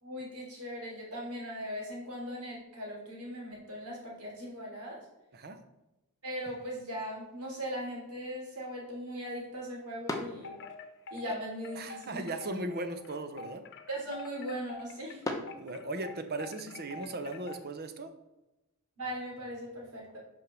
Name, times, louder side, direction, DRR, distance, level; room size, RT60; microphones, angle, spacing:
voice 1, 0.0-5.0 6.2-10.6 11.1-12.2 13.9-15.2 19.0-20.2, equal, 85° right, -3 dB, 3.2 m, -39 dB
sound 1, 6.3-16.4, left 2 dB, 15° left, 1.0 m, -46 dB
Wind chime, 10.4-17.8, left 4 dB, 55° left, 0.8 m, -47 dB
voice 2, 11.8-13.6 15.6-18.1, right 2 dB, 45° right, 8 dB, 0.8 m, -37 dB
6.3 x 5.4 x 6.2 m, 0.97 s
head